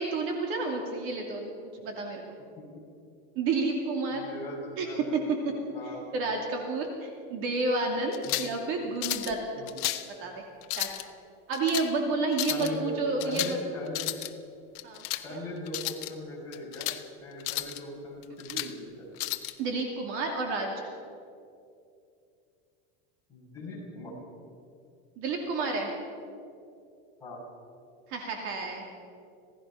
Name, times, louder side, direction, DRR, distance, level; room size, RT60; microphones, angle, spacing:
voice 1, 0.0-2.2 3.4-4.2 4.8-4.9 6.1-9.4 10.2-10.4 10.8-10.9 11.5-13.6 14.8-15.0 15.3-15.4 18.5-18.7 19.6-20.7 25.2-26.0 28.1-28.8, right 3 dB, 45° right, 2 dB, 2.5 m, -30 dB
voice 2, 4.1-5.2 5.7-6.1 8.2-8.5 9.6-9.7 12.5-12.9 13.2-14.1 15.2-16.9 17.2-19.1 23.3-24.1 27.2-27.4, left 1 dB, 10° left, -6 dB, 6.4 m, -40 dB
sound 1, 8.1-8.6 9.0-9.3 9.7-10.1 10.6-11.0 11.5-11.9 12.3-12.7 13.2-13.6 13.9-14.3 14.8-15.2 15.7-16.1 16.5-17.0 17.4-17.8 18.2-18.7 19.2-19.5, left 17 dB, 55° left, 1.1 m, -33 dB
26.5 x 17.0 x 5.7 m, 2.5 s
supercardioid pair, 175°, 31 cm